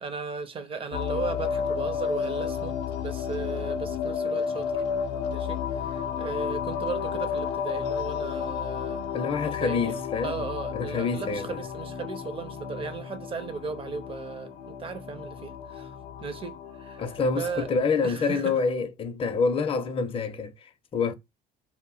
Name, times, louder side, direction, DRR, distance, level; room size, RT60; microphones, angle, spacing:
voice 1, 0.0-4.7 5.3-9.0 9.4-9.9 10.2-17.1 17.4-17.7 18.0-18.6, right 5 dB, 30° right, 0.5 m, -36 dB
sound 1, 0.9-17.7, left 7 dB, 90° left, 0.5 m, -32 dB
voice 2, 9.1-10.4 10.7-11.5 17.0-21.1, left 4 dB, 35° left, 0.5 m, -27 dB
2.1 x 2.0 x 3.7 m
cardioid pair, 110°, 17 cm